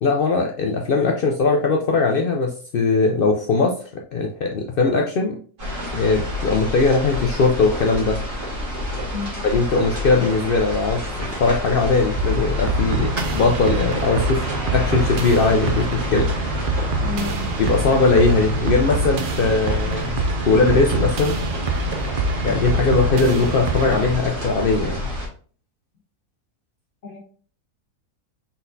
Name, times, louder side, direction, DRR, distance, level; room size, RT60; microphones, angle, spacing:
voice 1, 0.0-5.4 5.9-8.2 9.5-16.5 17.6-21.4 22.4-25.1, left 3 dB, 75° left, 1 dB, 0.5 m, -20 dB
sound 1, 5.6-25.3, left 1 dB, 40° right, 2.0 m, -29 dB
voice 2, 9.1-9.4 17.0-17.5 27.0-27.2, left 4 dB, 60° left, -2 dB, 1.6 m, -31 dB
sound 2, 12.2-24.2, right 3 dB, 80° right, 0.4 m, -25 dB
4.3 x 4.1 x 2.7 m, 0.43 s
omnidirectional pair, 1.7 m